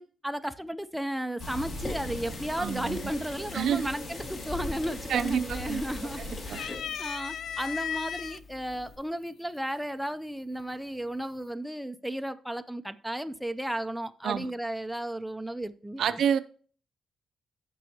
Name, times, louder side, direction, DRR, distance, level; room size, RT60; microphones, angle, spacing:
voice 1, 0.0-6.2 6.5-16.2, equal, 5° right, 0.5 m, -34 dB
sound 1, 1.4-6.6, left 1 dB, 60° left, 2.6 m, -39 dB
Mechanisms, 1.8-9.0, left 2 dB, 45° left, 1.9 m, -44 dB
voice 2, 2.6-3.0 3.5-3.9 5.1-5.8 6.5-6.6 14.2-14.5 16.0-16.4, right 8 dB, 75° right, 0.6 m, -28 dB
sound 2, 4.9-5.0 5.4-6.1 6.5-8.4 9.3-9.4 10.6-11.1, left 9 dB, 80° left, 0.4 m, -36 dB
16.0 x 5.5 x 2.8 m
cardioid pair, 130°, 0 cm